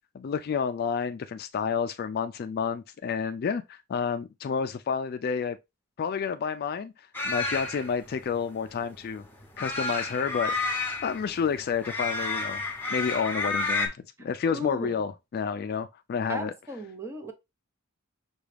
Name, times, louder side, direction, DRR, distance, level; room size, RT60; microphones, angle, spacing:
voice 1, 0.1-5.6 6.0-6.9 7.2-9.2 9.6-10.7 11.0-12.6 12.9-13.9 14.2-16.5, left 6 dB, 45° left, 0.3 m, -30 dB
sound 1, 7.1-13.9, left 3 dB, 10° left, 0.9 m, -31 dB
voice 2, 14.2-15.0 16.3-17.3, right 1 dB, 10° right, 0.7 m, -37 dB
6.0 x 2.3 x 3.2 m
head